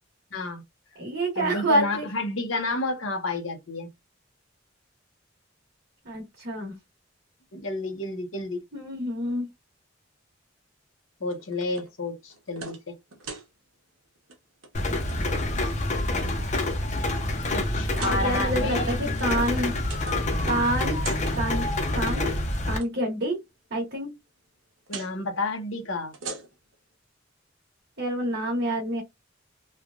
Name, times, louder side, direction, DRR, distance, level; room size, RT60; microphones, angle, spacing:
voice 1, 0.3-0.6 1.3-3.9 7.5-8.6 11.2-12.9 17.5-19.0 24.9-26.1, left 2 dB, 80° left, 0.9 m, -30 dB
voice 2, 1.0-2.0 6.1-6.8 8.7-9.5 18.0-19.7 20.5-21.0 21.4-21.6 21.9-22.3 22.7-23.4 23.7-24.1 28.0-29.0, right 1 dB, 60° right, 1.2 m, -27 dB
sound 1, 11.3-11.9 12.3-12.8 13.1-13.5 14.2-14.4 14.6-15.2 15.8-16.4 16.9-17.0 17.9-18.2 19.0-20.4 20.6-21.3 22.2-22.9 24.9-25.1 26.0-26.7, right 4 dB, 80° right, 0.9 m, -41 dB
Rain, 14.7-22.8, left 1 dB, 40° left, 0.7 m, -27 dB
3.3 x 2.3 x 2.4 m
head